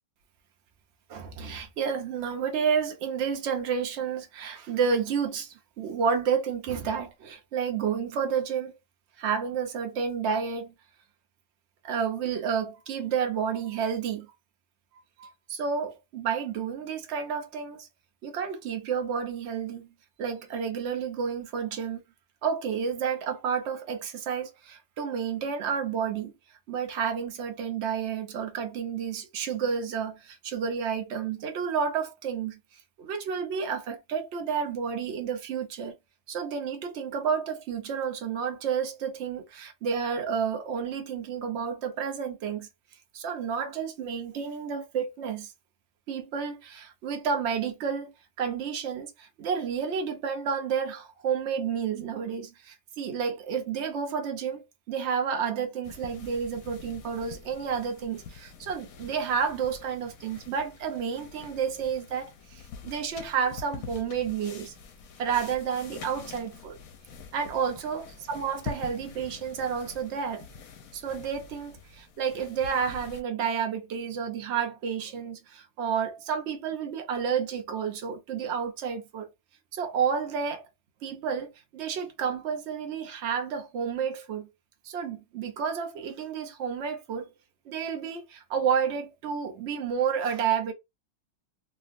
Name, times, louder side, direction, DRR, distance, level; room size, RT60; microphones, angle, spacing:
voice 1, 1.1-8.7 9.2-10.7 11.8-14.3 15.2-17.9 18.2-19.9 20.2-22.0 22.4-26.3 26.7-32.6 33.0-36.0 36.3-42.7 43.1-45.5 46.1-48.1 48.4-64.7 65.2-66.8 67.3-68.0 68.3-70.5 70.9-79.3 79.7-80.7 81.0-84.5 84.8-87.3 87.7-90.7, right 6 dB, 65° right, 0.6 m, -30 dB
sound 1, 55.8-73.2, left 5 dB, 65° left, 0.9 m, -45 dB
3.3 x 2.3 x 2.5 m
omnidirectional pair, 1.9 m